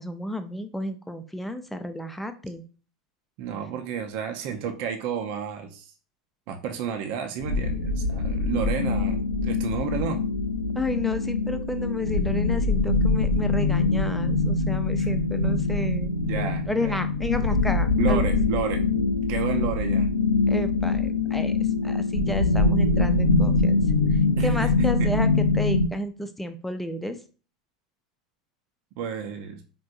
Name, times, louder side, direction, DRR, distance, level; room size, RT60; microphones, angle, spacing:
voice 1, 0.0-2.6 10.7-18.2 20.5-23.8 24.1-27.2, left 1 dB, 5° left, 8 dB, 0.5 m, -32 dB
voice 2, 3.4-5.9 6.5-10.2 15.0-15.1 16.2-17.0 18.0-18.8 19.3-20.1 24.4-24.9 29.0-29.6, right 8 dB, 55° right, 5 dB, 0.6 m, -31 dB
sound 1, 7.4-25.9, left 3 dB, 85° left, 0.4 m, -23 dB
4.5 x 2.6 x 2.5 m, 0.37 s
hypercardioid pair, 85°, 3 cm